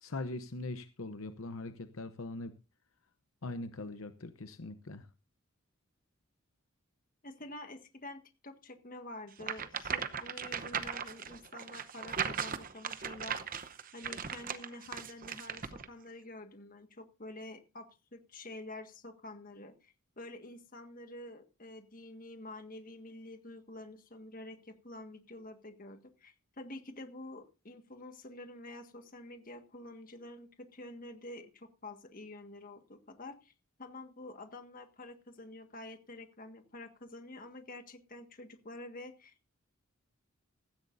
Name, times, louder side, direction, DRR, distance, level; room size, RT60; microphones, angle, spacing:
voice 1, 0.0-2.5 3.4-5.1, left 2 dB, 70° left, 10 dB, 0.8 m, -41 dB
voice 2, 7.2-13.4 13.9-33.5 33.8-39.5, left 2 dB, 40° left, 7 dB, 1.7 m, -48 dB
sound 1, 9.4-15.9, right 7 dB, 40° right, 0.8 m, -38 dB
16.0 x 14.5 x 2.6 m, 0.31 s
head